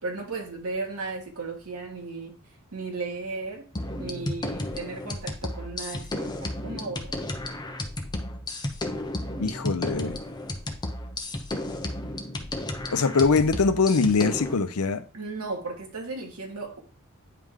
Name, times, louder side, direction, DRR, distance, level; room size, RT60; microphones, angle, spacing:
voice 1, 0.0-2.4 2.7-3.6 4.0-7.1 15.1-16.8, right 3 dB, 85° right, 1.5 m, -35 dB
sound 1, 3.8-14.5, left 1 dB, 20° left, 0.7 m, -33 dB
voice 2, 9.4-10.2 12.9-15.0, left 4 dB, 85° left, 0.7 m, -23 dB
9.3 x 3.3 x 3.6 m
head